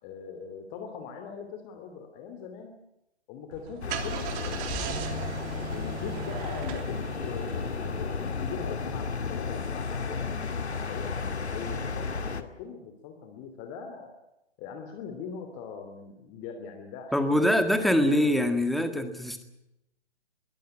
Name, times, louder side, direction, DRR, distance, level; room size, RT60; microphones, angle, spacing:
voice 1, 0.0-2.7 3.3-5.0 5.4-11.1 11.5-14.1 14.6-17.7 18.0-18.3, left 6 dB, 25° left, 5 dB, 2.9 m, -41 dB
Car / Engine starting, 3.5-8.2, right 9 dB, 25° right, 3.3 m, -38 dB
sound 1, 3.8-12.4, left 4 dB, 80° left, 2.3 m, -33 dB
voice 2, 17.1-19.4, left 1 dB, ahead, 8 dB, 1.9 m, -24 dB
22.5 x 17.0 x 9.8 m, 0.88 s
figure-of-eight pair, 135°, 33 cm